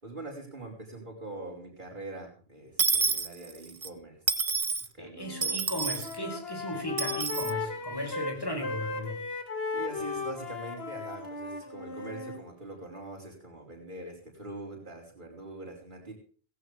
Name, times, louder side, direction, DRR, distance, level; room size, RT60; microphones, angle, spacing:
voice 1, 0.0-4.2 4.8-5.7 5.9-6.1 9.7-16.1, right 2 dB, 50° right, -2 dB, 5.3 m, -43 dB
Dishes pots and pans / Coin (dropping), 2.8-3.9 4.3-4.9 5.4-6.1 7.0-7.5, right 4 dB, 35° right, 0.8 m, -28 dB
voice 2, 5.0-9.2, left 1 dB, 20° left, 3 dB, 4.3 m, -36 dB
Wind instrument woodwind instrument, 5.1-5.6 5.9-12.4, left 4 dB, 75° left, 2.3 m, -36 dB
17.0 x 15.5 x 3.4 m, 0.41 s
omnidirectional pair, 1.0 m